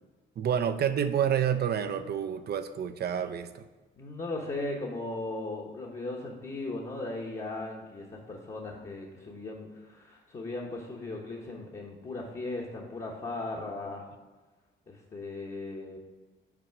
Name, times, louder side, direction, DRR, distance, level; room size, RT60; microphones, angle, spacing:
voice 1, 0.4-3.6, right 8 dB, 55° right, 10 dB, 0.6 m, -28 dB
voice 2, 4.0-14.1 14.9-16.0, left 2 dB, 35° left, -4 dB, 1.1 m, -37 dB
6.0 x 4.2 x 6.0 m, 1.2 s
cardioid pair, 90°, 20 cm